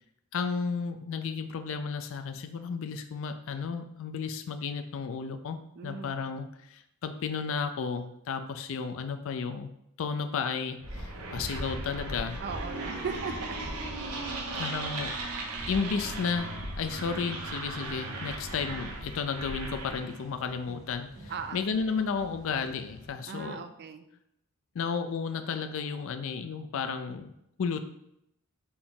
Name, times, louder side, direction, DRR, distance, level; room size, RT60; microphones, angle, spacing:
voice 1, 0.3-9.7 10.0-12.4 14.5-15.2 15.7-16.5 16.8-23.7 24.7-27.3 27.6-27.8, left 5 dB, 60° left, 10 dB, 0.4 m, -33 dB
voice 2, 5.8-6.2 12.4-13.6 21.3-21.6 23.3-24.1, right 5 dB, 50° right, 9 dB, 0.3 m, -38 dB
sound 1, 10.8-20.2, right 2 dB, 85° right, 0.7 m, -37 dB
sound 2, 12.5-23.1, right 1 dB, 70° right, 1.6 m, -54 dB
4.1 x 2.8 x 3.7 m, 0.78 s
head